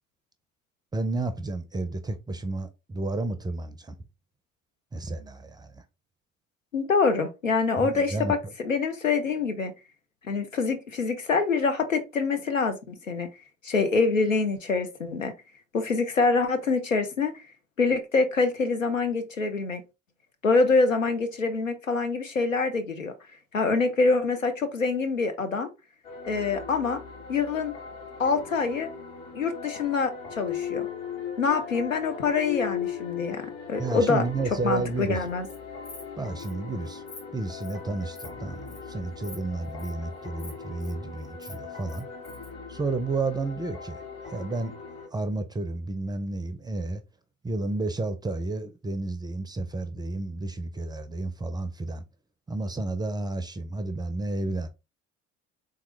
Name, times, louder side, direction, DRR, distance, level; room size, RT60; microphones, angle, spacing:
voice 1, 0.9-3.9 4.9-5.8 7.8-8.5 33.8-35.2 36.2-37.0 37.3-42.1 42.7-44.0 44.3-44.7 45.1-47.0 47.4-52.0 52.5-54.7, right 2 dB, 10° right, 0.4 m, -31 dB
voice 2, 6.7-9.7 10.2-13.3 13.6-15.3 15.7-17.3 17.8-19.8 20.4-23.1 23.5-25.7 26.3-27.0 27.3-27.7 28.2-28.9 29.3-30.9 31.4-34.2 34.6-35.5, left 4 dB, 90° left, 0.6 m, -25 dB
sound 1, 26.0-45.1, left 7 dB, 40° left, 1.8 m, -39 dB
Insect, 35.2-35.6 35.8-36.1 36.4-36.5 36.8-37.2 37.6-37.8 38.1-38.3 38.7-38.8 39.2-39.4 39.6-39.9 40.4-40.9 41.2-42.5, left 3 dB, 70° left, 2.0 m, -46 dB
3.7 x 2.9 x 3.1 m
figure-of-eight pair, 55°, 38 cm